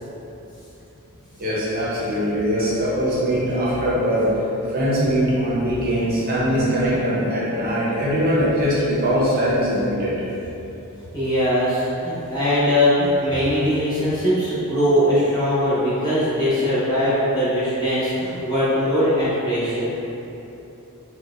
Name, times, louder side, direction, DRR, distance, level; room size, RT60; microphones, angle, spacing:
voice 1, 1.4-4.3 4.7-10.1, equal, 40° right, -8 dB, 0.6 m, -21 dB
voice 2, 11.1-19.9, equal, 20° left, -12 dB, 0.9 m, -21 dB
3.9 x 2.2 x 2.4 m, 2.9 s
head